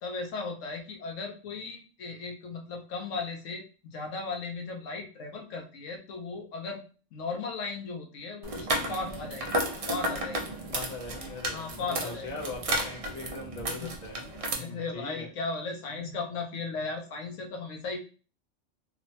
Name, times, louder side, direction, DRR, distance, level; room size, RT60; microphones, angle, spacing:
voice 1, 0.0-6.8 7.1-9.5 9.9-10.4 11.5-12.3 13.7-13.9 14.6-18.0, left 4 dB, 85° left, 3 dB, 1.0 m, -36 dB
sound 1, 8.4-14.5, right 1 dB, 65° right, 0.3 m, -33 dB
voice 2, 10.7-14.3 14.6-15.3, left 2 dB, 40° left, -2 dB, 0.8 m, -40 dB
3.1 x 2.0 x 2.7 m, 0.36 s
omnidirectional pair, 1.3 m